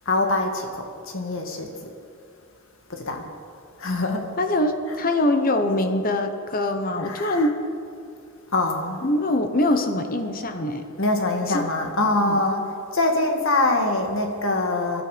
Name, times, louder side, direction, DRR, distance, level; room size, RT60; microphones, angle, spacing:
voice 1, 0.1-1.9 2.9-3.3 3.8-4.3 4.9-5.0 7.0-7.5 8.5-9.1 11.0-15.0, left 2 dB, 60° left, 3 dB, 2.0 m, -24 dB
voice 2, 4.4-7.6 9.0-10.8 11.5-11.6 12.0-12.4, left 1 dB, 40° left, 7 dB, 1.0 m, -23 dB
21.5 x 12.0 x 5.1 m, 2.3 s
head